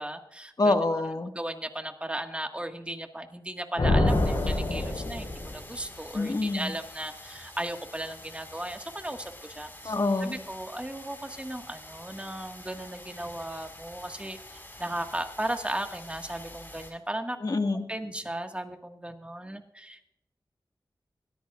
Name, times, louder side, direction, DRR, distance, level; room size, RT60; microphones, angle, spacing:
voice 1, 0.0-0.7 1.3-9.9 10.2-17.4 17.9-20.0, right 1 dB, 15° right, 5 dB, 1.7 m, -36 dB
voice 2, 0.6-1.3 6.1-6.7 9.8-10.4 17.4-17.9, left 2 dB, 50° left, 5 dB, 1.7 m, -26 dB
sound 1, 3.8-5.7, left 2 dB, 80° left, 4.7 m, -26 dB
sound 2, 4.1-16.9, left 1 dB, 25° left, 4.9 m, -47 dB
21.0 x 13.5 x 2.4 m, 0.80 s
wide cardioid pair, 55°, 8 cm